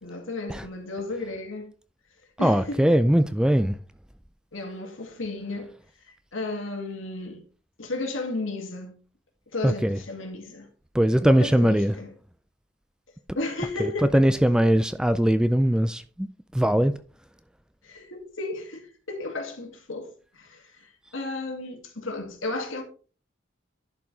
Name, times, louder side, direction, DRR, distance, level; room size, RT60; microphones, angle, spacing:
voice 1, 0.0-1.7 2.4-2.8 4.5-5.7 6.3-7.4 7.8-8.9 9.5-10.7 11.3-12.1 13.4-14.2 17.8-22.8, left 2 dB, 85° left, 2.1 m, -34 dB
voice 2, 2.4-3.8 9.6-10.0 10.9-12.0 13.8-16.3 16.5-16.9, equal, 5° right, 0.3 m, -21 dB
11.0 x 4.9 x 3.9 m
head